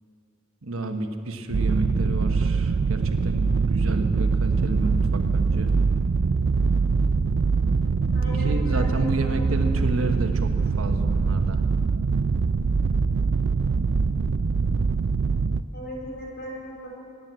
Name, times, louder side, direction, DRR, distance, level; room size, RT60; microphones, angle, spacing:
voice 1, 0.6-5.7 8.0-11.6, right 2 dB, 80° right, 6 dB, 1.1 m, -31 dB
sound 1, 1.5-15.6, right 4 dB, 60° right, 0.4 m, -23 dB
voice 2, 8.1-9.6 15.7-17.0, equal, 50° left, -3 dB, 4.1 m, -38 dB
18.0 x 9.2 x 8.0 m, 2.5 s
head